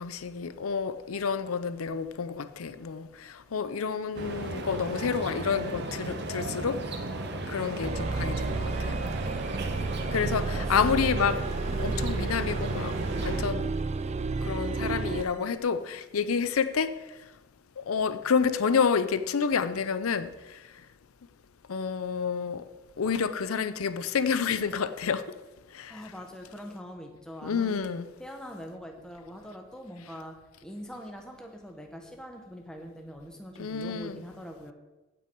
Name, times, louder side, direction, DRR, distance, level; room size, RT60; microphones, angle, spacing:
voice 1, 0.0-6.8 7.5-8.9 10.1-11.4 11.8-13.0 13.2-13.7 14.4-17.0 17.8-20.6 21.7-22.6 23.0-25.2 25.7-26.0 27.4-28.1 33.6-34.2, left 6 dB, 90° left, 0.6 m, -29 dB
sound 1, 4.1-13.4, right 2 dB, 50° right, 1.1 m, -35 dB
sound 2, 7.8-15.3, right 3 dB, 30° right, 0.4 m, -31 dB
voice 2, 9.2-10.8 25.9-27.9 28.2-30.3 30.6-34.7, equal, 5° left, 1.1 m, -43 dB
15.5 x 6.2 x 4.6 m
head